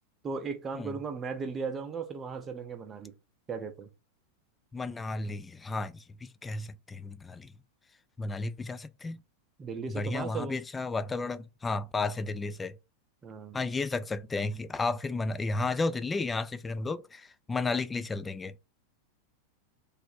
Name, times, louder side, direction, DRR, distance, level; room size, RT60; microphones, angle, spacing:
voice 1, 0.2-3.1 3.5-3.9 9.6-10.6 13.2-13.6, right 5 dB, 20° right, 0.6 m, -36 dB
voice 2, 4.7-7.5 8.2-9.2 9.9-12.7 13.5-18.5, left 3 dB, 15° left, 0.3 m, -33 dB
3.3 x 2.1 x 4.2 m
figure-of-eight pair, 90°, 0 cm